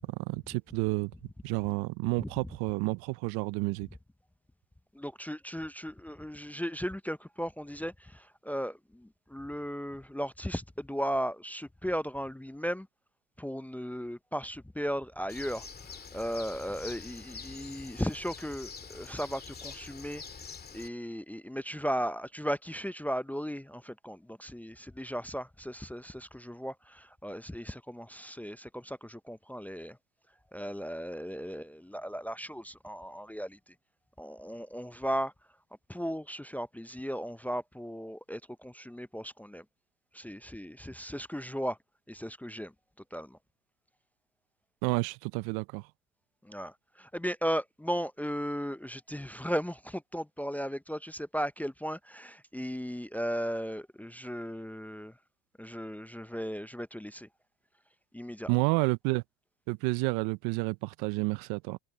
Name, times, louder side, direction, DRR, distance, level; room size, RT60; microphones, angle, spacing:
voice 1, 0.1-1.1 1.4-3.9 44.8-45.8 58.5-59.2 59.7-61.8, right 27 dB, 65° right, 0.7 m, -30 dB
voice 2, 4.9-12.9 13.4-15.7 16.1-20.2 20.7-30.0 30.5-33.6 34.2-35.3 35.9-39.6 40.1-41.8 42.1-42.7 43.1-43.4 46.4-55.1 55.6-57.3 58.1-58.5, equal, 5° left, 0.6 m, -36 dB
Bird, 15.3-20.9, left 5 dB, 25° left, 2.2 m, -46 dB
hypercardioid pair, 85°, 39 cm